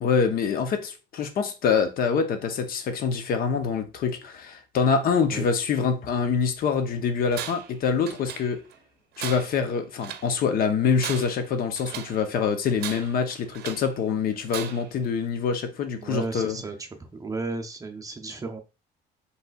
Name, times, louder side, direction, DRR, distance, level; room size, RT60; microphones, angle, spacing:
voice 1, 0.0-8.6 9.2-16.6, left 6 dB, 60° left, 0.7 m, -25 dB
Tools, 7.3-7.8 8.1-8.8 9.2-10.3 10.8-12.2 12.8-13.9 14.5-15.0, right 10 dB, 70° right, 0.6 m, -37 dB
voice 2, 16.0-18.6, right 3 dB, 20° right, 0.6 m, -34 dB
5.3 x 3.2 x 2.3 m
cardioid pair, 110°, 17 cm